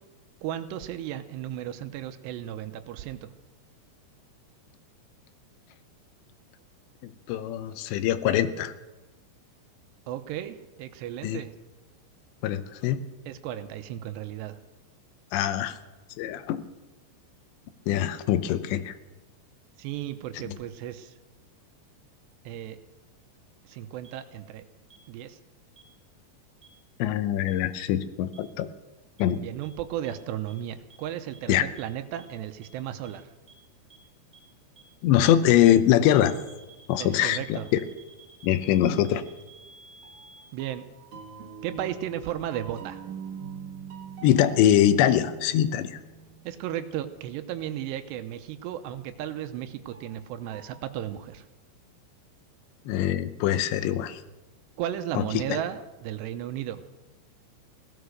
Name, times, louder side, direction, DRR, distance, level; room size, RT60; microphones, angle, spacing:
voice 1, 0.4-3.3 10.1-11.5 13.3-14.6 19.8-21.2 22.5-22.8 23.7-24.6 25.1-25.4 29.3-33.3 37.0-37.7 40.5-40.9 41.6-43.0 46.4-51.5 54.8-56.8, right 11 dB, 80° right, 10 dB, 2.8 m, -35 dB
voice 2, 7.0-8.7 11.2-11.4 12.4-13.0 15.3-15.8 16.2-16.6 17.9-18.9 20.5-20.6 27.0-28.7 29.2-29.4 31.5-31.7 35.0-36.3 36.9-37.8 38.4-39.2 44.2-46.0 52.9-54.2 55.1-55.2 55.5-55.6, left 11 dB, 85° left, 12 dB, 3.0 m, -23 dB
sound 1, 24.0-24.1 24.9-25.0 25.8-25.9 26.6-26.7 27.5-27.6 28.3-28.4 29.2-29.3 29.6-29.7 30.0-30.1 30.5-30.6 30.9-31.0 31.3-31.4 31.8-31.9 32.2-32.3 32.6-32.7 33.0-33.1 33.5-33.6 33.9-34.0 34.3-34.4 34.8-34.9 35.2-35.3 35.6-35.7 36.0-40.4, right 5 dB, ahead, 3.5 m, -53 dB
sound 2, 40.0-47.7 49.9-50.8, right 6 dB, 55° right, 1.9 m, -44 dB
16.5 x 13.0 x 6.5 m, 1.1 s
omnidirectional pair, 5.0 m